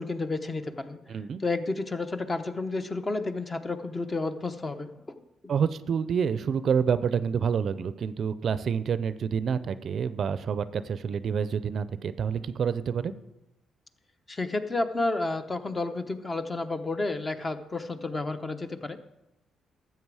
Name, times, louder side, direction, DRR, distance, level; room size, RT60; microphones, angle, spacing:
voice 1, 0.0-1.0 1.4-4.9 14.3-19.0, left 3 dB, 25° left, 9 dB, 0.8 m, -31 dB
voice 2, 1.1-1.4 5.5-13.1, right 7 dB, 55° right, 14 dB, 0.5 m, -28 dB
13.0 x 7.6 x 4.8 m, 0.93 s
cardioid pair, 90°, 0 cm